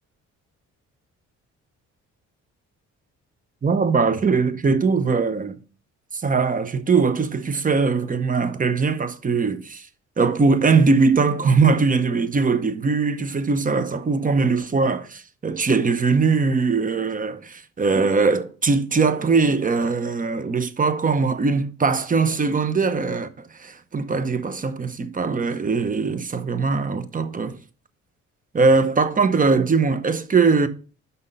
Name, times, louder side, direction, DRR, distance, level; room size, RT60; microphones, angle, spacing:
voice 1, 3.6-5.6 6.1-9.9 10.2-23.3 23.6-27.6 28.5-30.7, right 4 dB, 25° right, 0.9 m, -21 dB
5.9 x 5.6 x 5.6 m
cardioid pair, 90°, 30 cm